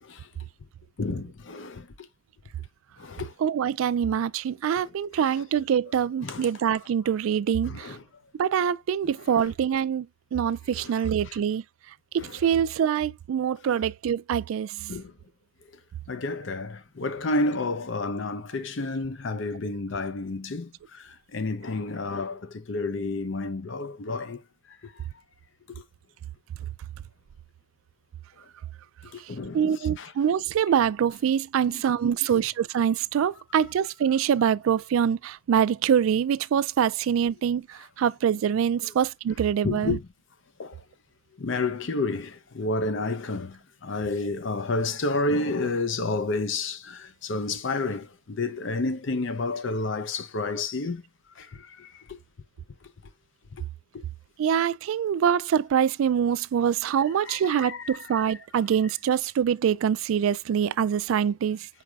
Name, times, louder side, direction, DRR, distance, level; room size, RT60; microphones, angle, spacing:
voice 1, 1.0-2.1 3.0-3.3 5.3-5.4 6.2-6.5 7.6-8.0 9.3-9.5 10.7-10.9 11.2-11.4 12.2-12.4 13.7-13.8 14.9-15.1 16.1-24.4 24.8-25.0 29.1-29.7 30.0-30.1 31.7-31.8 38.8-38.9 39.6-40.1 40.6-40.8 41.4-51.0 51.4-52.2 53.9-54.0 57.2-58.4, left 3 dB, 60° left, 0.6 m, -30 dB
voice 2, 3.4-8.0 8.4-11.6 12.1-14.9 29.5-40.0 54.4-61.7, right 8 dB, 80° right, 0.3 m, -25 dB
4.8 x 4.7 x 2.3 m
head